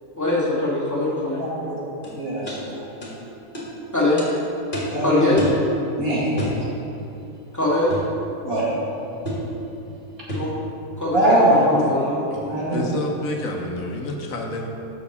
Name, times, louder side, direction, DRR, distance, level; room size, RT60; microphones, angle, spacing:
voice 1, 0.2-1.4 3.9-4.2 5.0-5.5 7.5-7.9 10.3-10.5 11.0-12.3, left 2 dB, 10° left, -8 dB, 2.0 m, -22 dB
voice 2, 1.4-1.8 2.1-2.8 4.9-5.4 6.0-6.6 8.4-8.7 10.3-10.4 11.1-11.7 12.4-12.9, right 1 dB, 75° right, -7 dB, 2.6 m, -21 dB
sound 1, 2.0-2.1 2.5-2.6 3.0-3.1 3.5-3.7 4.2-4.3 4.7-5.0 5.4-5.6 6.4-6.6 7.9-8.1 9.2-9.5 10.3-10.5, equal, 35° left, 2.0 m, -29 dB
voice 3, 11.4-11.8 12.3-14.7, left 2 dB, 70° left, 1 dB, 1.3 m, -30 dB
7.1 x 6.0 x 6.7 m, 2.8 s
omnidirectional pair, 1.5 m